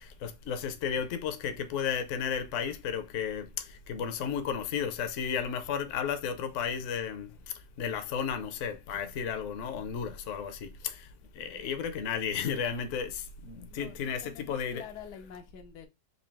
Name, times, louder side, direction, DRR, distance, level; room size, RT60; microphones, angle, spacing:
voice 1, 0.0-7.3 7.8-11.0 11.4-14.9, left 7 dB, 65° left, 0.8 m, -33 dB
voice 2, 13.7-15.9, left 8 dB, 90° left, 1.3 m, -47 dB
3.9 x 2.7 x 3.4 m
omnidirectional pair, 1.7 m